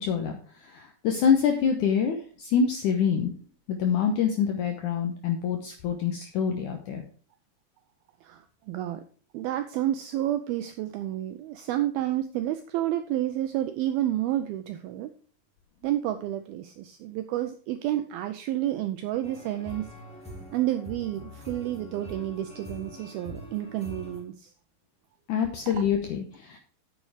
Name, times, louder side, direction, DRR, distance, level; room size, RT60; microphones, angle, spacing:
voice 1, 0.0-3.3 3.7-7.0 25.3-26.6, left 7 dB, 75° left, 4 dB, 1.8 m, -26 dB
voice 2, 8.2-9.0 9.3-15.1 15.8-19.9 20.5-24.5, right 13 dB, 80° right, 9 dB, 2.2 m, -30 dB
sound 1, 19.2-24.2, equal, ahead, 2.3 m, -43 dB
9.2 x 7.7 x 4.9 m, 0.43 s
omnidirectional pair, 5.0 m